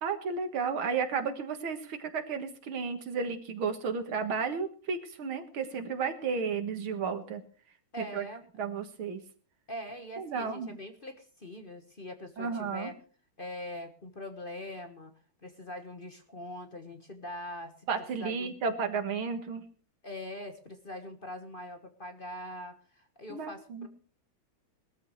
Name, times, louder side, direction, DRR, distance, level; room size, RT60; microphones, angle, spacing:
voice 1, 0.0-7.4 8.0-8.2 8.6-9.2 10.2-10.8 12.4-12.9 17.9-19.6 23.3-23.9, right 5 dB, 80° right, 8 dB, 2.5 m, -33 dB
voice 2, 7.9-8.5 9.7-13.0 13.4-15.1 15.4-17.7 18.1-18.5 20.0-23.9, left 1 dB, 30° left, 6 dB, 1.3 m, -42 dB
20.5 x 13.5 x 3.2 m, 0.39 s
omnidirectional pair, 2.3 m